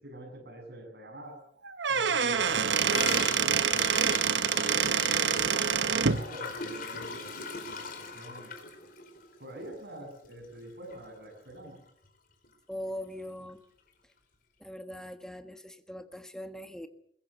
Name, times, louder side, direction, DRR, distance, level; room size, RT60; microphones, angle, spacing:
voice 1, 0.0-1.4 1.9-4.7 5.7-7.3 7.6-8.6 9.4-11.8, right 1 dB, 60° right, 0 dB, 7.7 m, -46 dB
Squeak / Wood, 1.6-6.2, right 7 dB, 80° right, 1.1 m, -26 dB
Gurgling / Toilet flush, 2.4-10.6 10.9-11.0 11.3-11.8 12.0-12.1 12.4-12.5 13.5-13.6, left 4 dB, 55° left, 4.5 m, -41 dB
voice 2, 12.7-13.6 14.6-16.9, equal, 5° left, 8 dB, 1.4 m, -41 dB
22.0 x 20.5 x 7.0 m, 0.68 s
head